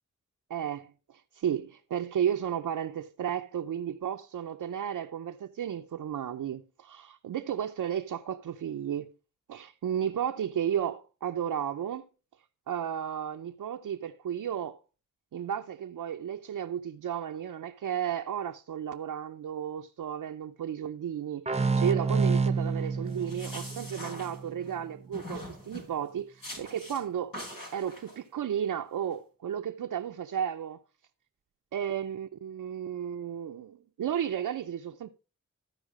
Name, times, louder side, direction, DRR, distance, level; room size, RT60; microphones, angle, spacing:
voice 1, 0.5-9.1 9.5-12.1 12.7-14.8 15.3-27.4 27.7-30.8 31.7-35.1, right 9 dB, 90° right, 0.6 m, -33 dB
sound 1, 21.5-24.9, right 4 dB, 20° right, 0.7 m, -29 dB
sound 2, 23.1-24.8 25.1-25.9 26.4-27.0 27.3-28.2, left 1 dB, 85° left, 3.9 m, -43 dB
13.5 x 4.8 x 4.9 m
cardioid pair, 40°, 32 cm